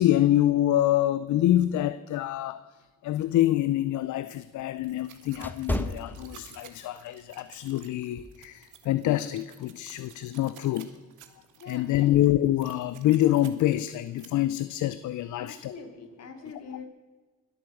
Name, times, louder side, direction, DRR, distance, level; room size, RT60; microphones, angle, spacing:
voice 1, 0.0-2.6 3.0-10.9 11.7-15.7 16.4-16.5, left 13 dB, 75° left, 14 dB, 0.6 m, -26 dB
sound 1, 3.2-6.9 7.3-7.6 8.2-8.4, left 1 dB, 5° left, 1.2 m, -35 dB
sound 2, 4.8-14.3, right 10 dB, 80° right, 1.6 m, -53 dB
voice 2, 11.6-12.2 15.4-16.8, left 5 dB, 60° left, 5 dB, 3.0 m, -43 dB
22.5 x 8.8 x 6.4 m, 1.3 s
cardioid pair, 90°, 30 cm